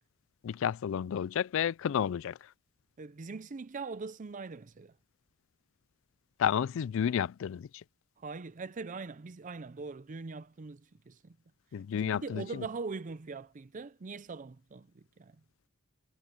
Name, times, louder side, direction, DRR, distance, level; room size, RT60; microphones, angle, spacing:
voice 1, 0.4-2.4 6.4-7.8 11.7-12.6, left 8 dB, 65° left, 0.3 m, -31 dB
voice 2, 3.0-5.0 8.2-11.4 11.9-15.4, right 4 dB, 40° right, 0.5 m, -42 dB
head